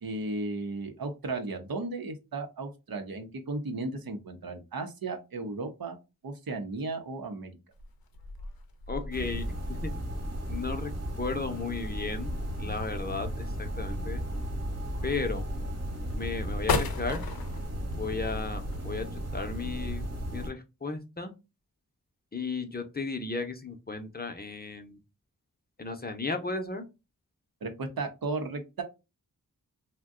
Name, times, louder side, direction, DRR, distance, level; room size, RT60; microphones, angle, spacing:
voice 1, 0.0-6.0 6.2-7.6 27.6-28.8, right 3 dB, 80° right, 6 dB, 0.7 m, -35 dB
sound 1, 7.7-18.9, left 4 dB, 90° left, 0.5 m, -38 dB
voice 2, 8.9-9.4 9.7-9.9 10.5-10.9 11.2-12.3 12.6-14.2 15.0-15.5 16.2-17.2 17.9-19.1 19.3-21.3 22.3-25.0 25.8-26.8, left 4 dB, 25° left, 6 dB, 0.6 m, -34 dB
sound 2, 9.1-20.5, equal, 45° right, 1.2 m, -35 dB
2.5 x 2.2 x 3.6 m, 0.26 s
wide cardioid pair, 50°, 35 cm